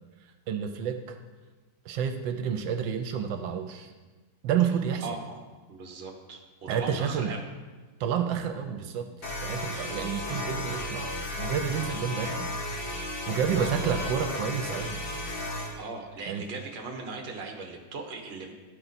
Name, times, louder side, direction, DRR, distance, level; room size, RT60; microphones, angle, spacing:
voice 1, 0.2-1.2 1.8-3.9 4.4-5.1 6.7-7.3 8.0-9.1 9.4-12.5 13.3-15.1 16.2-16.4, right 8 dB, 80° right, 7 dB, 1.3 m, -30 dB
voice 2, 5.0-5.4 5.7-7.4 9.4-9.6 13.0-13.9 15.8-18.6, right 3 dB, 40° right, 2 dB, 1.0 m, -39 dB
sound 1, 9.2-15.7, left 1 dB, 75° left, 2.5 m, -34 dB
12.0 x 4.5 x 4.1 m, 1.3 s
omnidirectional pair, 2.1 m